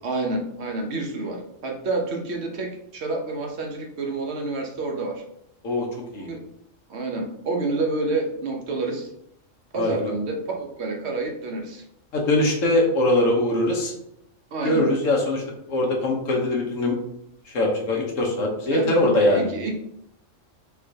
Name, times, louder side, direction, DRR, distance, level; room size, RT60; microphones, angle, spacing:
voice 1, 0.0-5.2 6.2-6.4 6.9-9.1 9.7-11.8 14.5-14.9 18.7-19.8, right 3 dB, 60° right, 2 dB, 1.1 m, -28 dB
voice 2, 9.7-10.1 12.1-13.9 14.6-15.4 15.7-16.9 17.5-19.5, left 1 dB, 85° left, -1 dB, 1.4 m, -22 dB
5.7 x 3.1 x 2.8 m, 0.75 s
omnidirectional pair, 1.3 m